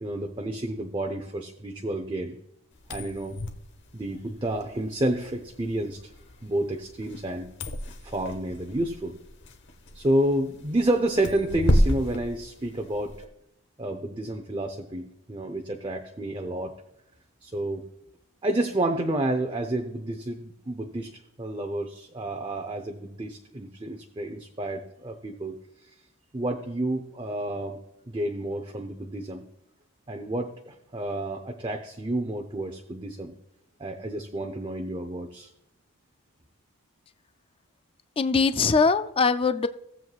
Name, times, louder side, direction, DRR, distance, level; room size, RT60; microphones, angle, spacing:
voice 1, 0.0-2.4 2.9-3.4 3.9-6.0 6.4-7.5 8.0-9.2 9.9-13.1 13.8-16.7 17.4-17.8 18.4-25.6 26.3-27.8 28.1-29.4 30.1-33.3 33.8-35.5, right 1 dB, 20° right, 4 dB, 0.7 m, -30 dB
sound 1, 2.7-13.2, equal, 55° left, 1.0 m, -31 dB
voice 2, 38.2-39.7, left 4 dB, 25° left, 11 dB, 0.3 m, -22 dB
17.0 x 7.7 x 2.4 m, 0.81 s
head